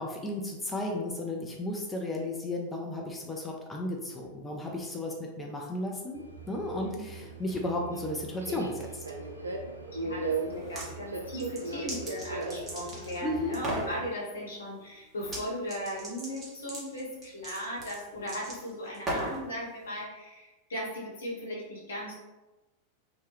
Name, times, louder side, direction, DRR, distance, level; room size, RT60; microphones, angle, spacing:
voice 1, 0.0-9.0 13.2-13.5, left 1 dB, 15° left, 0 dB, 0.5 m, -34 dB
Subway metro underground, 6.1-14.1, right 3 dB, 85° right, 0.4 m, -38 dB
voice 2, 9.9-22.1, equal, 75° left, -3 dB, 1.0 m, -37 dB
sound 1, 10.5-10.9 11.3-13.2 13.5-13.9 15.2-15.4 15.7-19.4, right 1 dB, 25° right, 1.1 m, -37 dB
3.0 x 2.2 x 3.2 m, 1.1 s
figure-of-eight pair, 90°, 0 cm